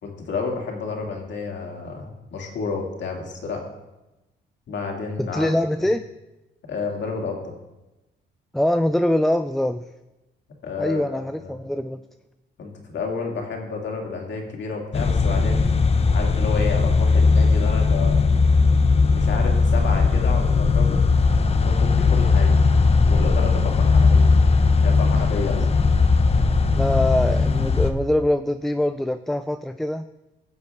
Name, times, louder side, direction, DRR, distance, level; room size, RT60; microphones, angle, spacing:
voice 1, 0.0-3.6 4.7-5.5 6.7-7.5 10.6-11.6 12.6-15.7 16.1-18.3 19.1-21.0 21.6-22.6 23.0-24.4 24.8-25.7, left 4 dB, 65° left, 1 dB, 2.4 m, -30 dB
voice 2, 5.2-6.1 8.5-9.9 10.8-12.0 26.7-30.1, left 1 dB, ahead, 10 dB, 0.3 m, -23 dB
sound 1, 14.9-27.9, left 4 dB, 30° left, 0.8 m, -18 dB
16.5 x 7.1 x 3.6 m, 1.0 s
cardioid pair, 90°, 20 cm